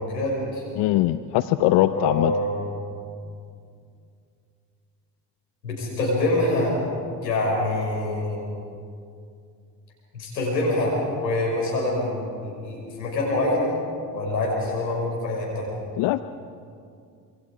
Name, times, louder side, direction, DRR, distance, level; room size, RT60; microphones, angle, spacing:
voice 1, 0.0-0.6 1.9-2.7 5.6-6.8 7.2-8.4 10.1-13.6 14.1-15.7, left 1 dB, 90° left, -3 dB, 5.7 m, -25 dB
voice 2, 0.8-2.3 16.0-16.2, left 15 dB, 55° left, 13 dB, 0.8 m, -21 dB
26.5 x 23.0 x 5.0 m, 2.4 s
hypercardioid pair, 55°, 50 cm